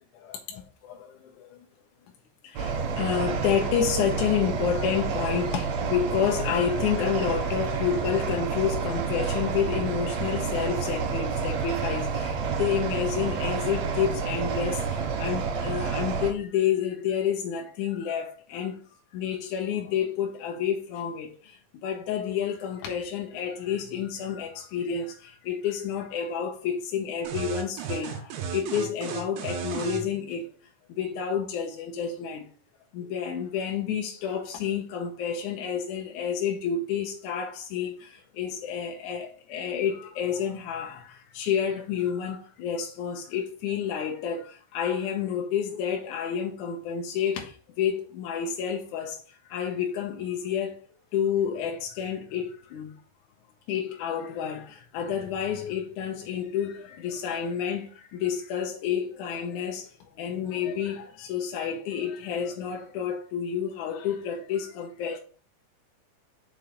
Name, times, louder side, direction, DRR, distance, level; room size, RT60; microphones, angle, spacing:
voice 1, 0.1-1.7 2.4-18.8 19.1-30.5 30.9-32.5 32.9-50.8 51.1-52.9 53.7-65.2, left 8 dB, 75° left, 2.1 m, -30 dB
sound 1, 2.6-16.3, right 5 dB, 70° right, 1.7 m, -29 dB
sound 2, 27.2-30.1, right 7 dB, 85° right, 2.8 m, -34 dB
5.7 x 4.8 x 3.8 m
omnidirectional pair, 4.0 m